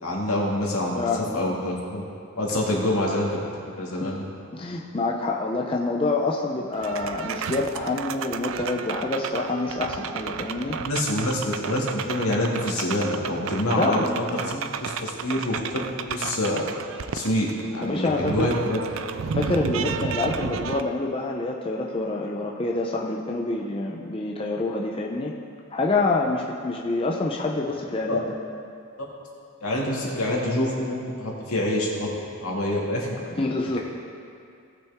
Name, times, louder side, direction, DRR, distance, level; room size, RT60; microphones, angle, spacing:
voice 1, 0.0-0.9 1.3-2.0 2.3-3.3 3.8-4.2 10.8-14.3 14.8-15.8 16.1-16.6 17.1-18.8 28.0-28.2 29.6-32.1 32.4-33.3, left 1 dB, 80° left, -3 dB, 2.1 m, -26 dB
voice 2, 1.0-1.4 4.0-4.1 4.5-10.8 13.8-14.7 17.8-18.6 19.3-25.3 25.7-28.4 33.3-33.8, left 2 dB, 25° left, -1 dB, 0.5 m, -27 dB
sound 1, 6.7-20.8, right 6 dB, 60° right, 0.4 m, -32 dB
18.0 x 6.0 x 3.6 m, 2.3 s
head